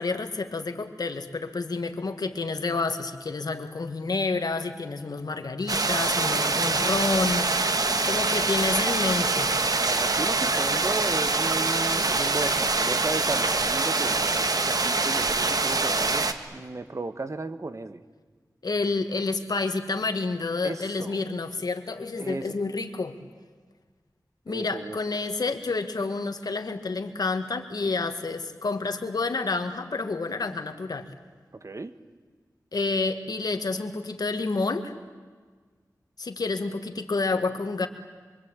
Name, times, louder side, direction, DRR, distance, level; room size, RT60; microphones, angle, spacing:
voice 1, 0.0-9.5 18.6-23.2 24.5-31.1 32.7-34.9 36.2-37.9, left 3 dB, 80° left, 7 dB, 2.0 m, -29 dB
sound 1, 5.7-16.3, right 3 dB, 70° right, 1.6 m, -24 dB
voice 2, 7.8-8.3 9.9-18.0 20.6-21.2 22.2-22.6 24.5-25.0 31.5-32.0, right 3 dB, 50° right, 10 dB, 1.4 m, -35 dB
26.0 x 24.5 x 9.0 m, 1.5 s
wide cardioid pair, 60°, 7 cm